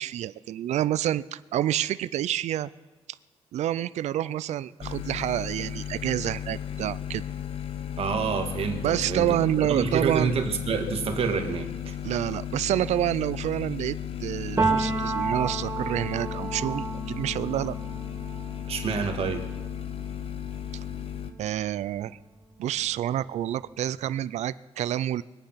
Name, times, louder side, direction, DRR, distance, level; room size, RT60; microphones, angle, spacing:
voice 1, 0.0-2.7 3.5-7.2 8.8-10.3 12.0-17.7 21.4-22.2 22.6-25.2, right 12 dB, 85° right, 17 dB, 0.4 m, -28 dB
sound 1, 4.8-21.3, left 10 dB, 55° left, 1.1 m, -35 dB
voice 2, 8.0-9.4 9.7-12.0 18.7-19.4, right 5 dB, 60° right, 5 dB, 1.8 m, -28 dB
Piano, 14.6-22.2 22.5-24.1, right 3 dB, 20° right, 2.4 m, -33 dB
23.5 x 8.9 x 5.7 m, 1.2 s
wide cardioid pair, 140°, 11 cm